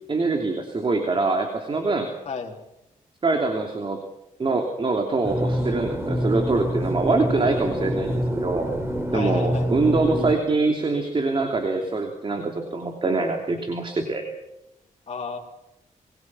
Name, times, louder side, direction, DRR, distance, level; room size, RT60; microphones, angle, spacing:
voice 1, 0.1-2.1 3.2-4.0 4.4-8.7 9.1-14.2, right 3 dB, 40° right, 3 dB, 3.1 m, -24 dB
voice 2, 2.3-2.6 9.1-9.7 15.1-15.4, left 5 dB, 50° left, -1 dB, 3.6 m, -32 dB
sound 1, 5.2-10.3, equal, 20° right, 4.2 m, -26 dB
28.0 x 22.0 x 6.2 m, 0.87 s
wide cardioid pair, 105°, 14 cm